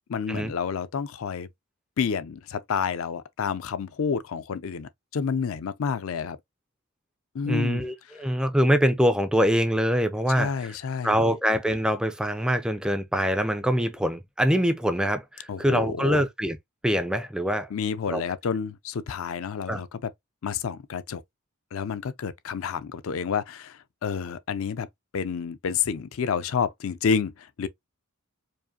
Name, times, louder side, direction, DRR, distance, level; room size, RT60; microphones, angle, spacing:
voice 1, 0.0-1.5 2.0-6.4 7.3-7.8 10.3-11.2 15.5-16.2 17.7-20.1 20.4-21.2 21.7-24.9 25.1-27.7, left 6 dB, 65° left, 0.4 m, -29 dB
voice 2, 7.5-10.8 11.0-16.6 16.8-17.7 18.1-18.2 19.7-19.8, equal, 5° right, 0.3 m, -24 dB
4.7 x 2.5 x 2.7 m
head